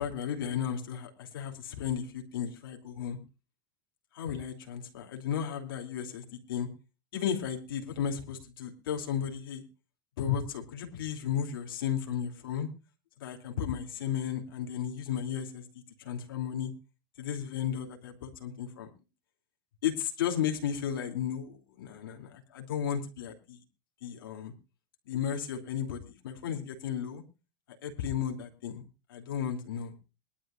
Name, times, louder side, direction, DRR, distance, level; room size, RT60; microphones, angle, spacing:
voice 1, 0.0-3.2 4.1-6.7 7.1-9.6 10.2-12.7 13.2-15.6 16.0-16.7 17.2-18.9 19.8-23.6 24.0-24.5 25.1-27.2 27.8-28.8 29.1-29.9, left 8 dB, 85° left, 4 dB, 2.8 m, -34 dB
22.5 x 11.5 x 2.4 m, 0.30 s
supercardioid pair, 120°, 11 cm